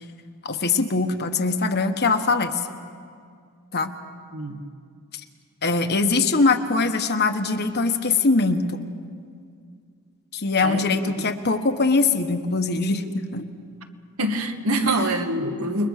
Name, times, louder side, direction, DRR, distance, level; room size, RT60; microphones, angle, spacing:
voice 1, 0.4-2.6 3.7-3.9 5.6-8.8 10.3-13.5 15.0-15.1, left 3 dB, 50° left, 7 dB, 1.4 m, -22 dB
voice 2, 4.3-4.6 10.6-10.8 14.2-15.9, right 1 dB, 75° right, 5 dB, 1.9 m, -25 dB
29.0 x 22.0 x 6.7 m, 2.2 s
head